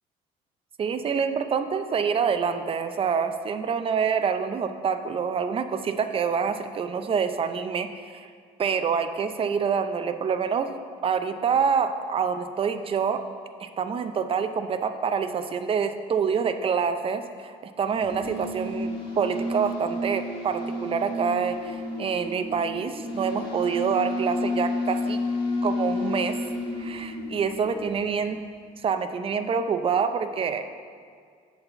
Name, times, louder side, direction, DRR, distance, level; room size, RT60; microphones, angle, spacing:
voice 1, 0.8-8.3 8.6-10.7 11.0-13.2 13.6-25.2 25.6-26.4 26.8-28.4 28.8-30.7, right 6 dB, 35° right, 9 dB, 0.5 m, -26 dB
sound 1, 17.9-28.3, left 1 dB, 30° left, 1.7 m, -31 dB
7.8 x 4.1 x 6.7 m, 2.1 s
cardioid pair, 110°, 17 cm